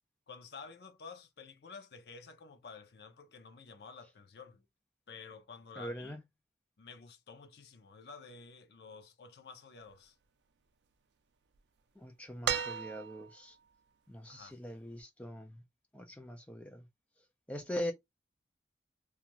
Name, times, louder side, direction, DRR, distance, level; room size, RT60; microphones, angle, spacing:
voice 1, 0.3-4.7 5.1-6.2 6.8-10.1 14.3-14.6, left 5 dB, 70° left, 0.5 m, -51 dB
voice 2, 5.8-6.2 12.0-13.5 14.1-15.6 15.9-16.8 17.5-17.9, equal, 5° left, 0.4 m, -41 dB
sound 1, 12.4-13.5 15.0-15.1, right 8 dB, 80° right, 0.4 m, -35 dB
2.5 x 2.3 x 2.9 m
head